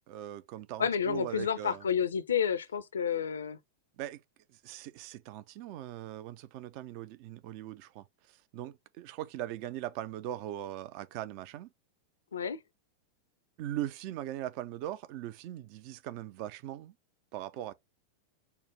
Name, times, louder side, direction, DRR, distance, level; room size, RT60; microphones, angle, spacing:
voice 1, 0.1-1.9 4.0-4.2 4.6-11.7 13.6-16.9 17.3-17.7, right 13 dB, 45° right, 0.4 m, -40 dB
voice 2, 0.8-3.6 12.3-12.6, left 7 dB, 70° left, 0.5 m, -30 dB
4.6 x 2.1 x 3.3 m
figure-of-eight pair, 90°, 0 cm